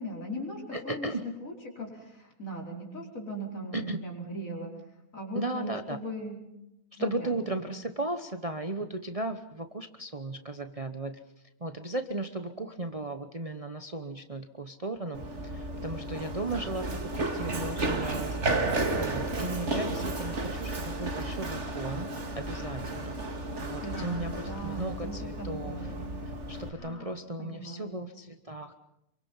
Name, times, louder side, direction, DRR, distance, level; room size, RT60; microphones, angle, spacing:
voice 1, 0.0-4.7 5.1-6.4 7.0-7.7 23.8-26.1 26.8-28.0, equal, 65° left, -1 dB, 5.4 m, -39 dB
voice 2, 0.7-1.2 3.7-4.0 5.3-6.0 6.9-11.2 11.6-18.4 18.7-23.2 23.6-25.8 26.5-28.7, right 2 dB, 25° right, 7 dB, 1.0 m, -36 dB
Run, 15.1-26.7, right 2 dB, 50° right, 2.4 m, -33 dB
27.0 x 23.5 x 5.6 m, 0.85 s
omnidirectional pair, 1.5 m